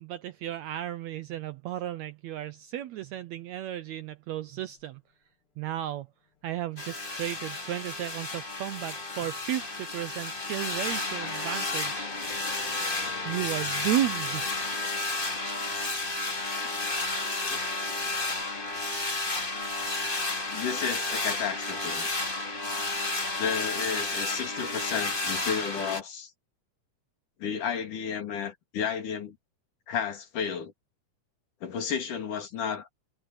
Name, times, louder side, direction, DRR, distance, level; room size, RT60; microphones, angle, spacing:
voice 1, 0.0-5.0 5.6-6.1 6.4-12.2 13.2-14.5, right 13 dB, 75° right, 1.6 m, -34 dB
sound 1, 4.5-5.2 6.0-20.0, left 4 dB, 40° left, 4.5 m, -55 dB
sound 2, 6.8-26.0, left 2 dB, 20° left, 2.2 m, -32 dB
voice 2, 20.5-22.1 23.4-26.3 27.4-29.4 29.9-30.7 31.6-32.9, left 7 dB, 70° left, 4.2 m, -32 dB
omnidirectional pair, 3.8 m